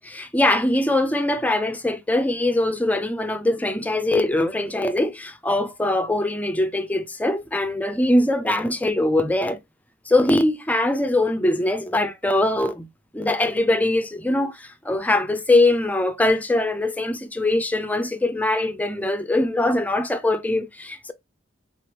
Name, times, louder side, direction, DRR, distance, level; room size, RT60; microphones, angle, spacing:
voice 1, 0.1-9.6 10.1-12.9 13.1-21.1, left 1 dB, 5° left, 0.4 m, -22 dB
3.9 x 3.3 x 2.9 m
head